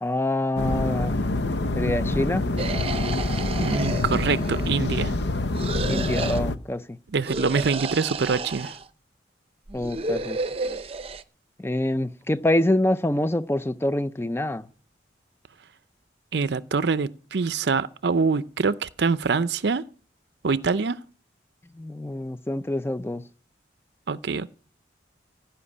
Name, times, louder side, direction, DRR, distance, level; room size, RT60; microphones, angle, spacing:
voice 1, 0.0-1.2 1.8-2.4 5.8-7.0 9.7-10.4 11.6-14.7 21.7-23.2, left 1 dB, 15° left, 0.5 m, -26 dB
sound 1, 0.6-6.6, left 2 dB, 70° left, 0.8 m, -26 dB
sound 2, 2.6-4.8 5.5-6.4 7.2-8.9 9.7-11.2, right 3 dB, 30° right, 0.7 m, -32 dB
voice 2, 3.6-5.2 7.1-8.7 16.3-19.8 20.4-21.0 24.1-24.6, right 4 dB, 65° right, 0.5 m, -25 dB
15.5 x 5.7 x 9.7 m
head